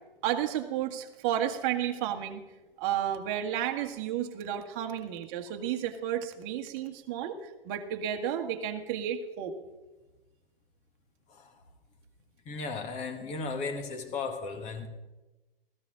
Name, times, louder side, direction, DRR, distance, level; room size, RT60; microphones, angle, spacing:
voice 1, 0.2-2.4 2.8-9.5, right 10 dB, 30° right, 5 dB, 1.6 m, -32 dB
voice 2, 12.5-14.9, left 4 dB, 25° left, 7 dB, 1.9 m, -36 dB
16.5 x 14.5 x 3.8 m, 1.1 s
figure-of-eight pair, 120°, 30 cm